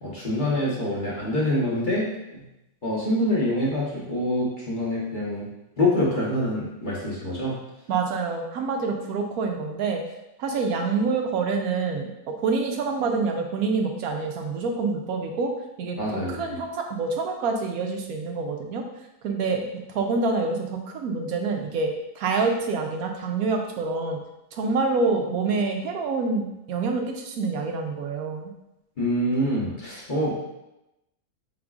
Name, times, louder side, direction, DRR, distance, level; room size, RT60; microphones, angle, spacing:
voice 1, 0.0-2.4 2.8-5.5 5.8-7.5 16.0-16.6 29.0-30.3, left 1 dB, 35° left, -6 dB, 1.0 m, -25 dB
voice 2, 7.9-10.0 10.4-15.5 15.8-16.0 16.3-18.8 19.2-24.2 24.5-28.5, right 4 dB, 80° right, 3 dB, 1.1 m, -26 dB
5.0 x 3.9 x 2.4 m, 0.90 s
omnidirectional pair, 1.6 m